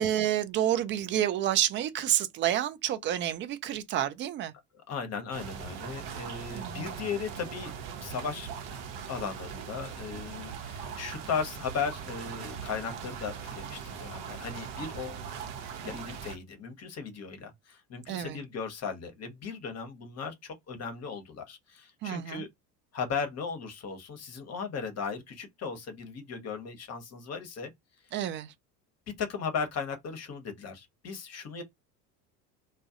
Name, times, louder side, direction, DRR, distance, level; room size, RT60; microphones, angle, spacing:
voice 1, 0.0-4.5 6.5-6.9 18.1-18.4 22.0-22.4 28.1-28.5, right 11 dB, 30° right, 0.3 m, -29 dB
voice 2, 4.9-7.7 8.0-8.5 9.1-15.2 15.8-22.5 22.9-27.7 29.2-31.6, left 5 dB, 35° left, 0.9 m, -36 dB
sound 1, 5.3-16.4, right 7 dB, 55° right, 0.7 m, -40 dB
2.2 x 2.1 x 2.7 m
hypercardioid pair, 70°, 46 cm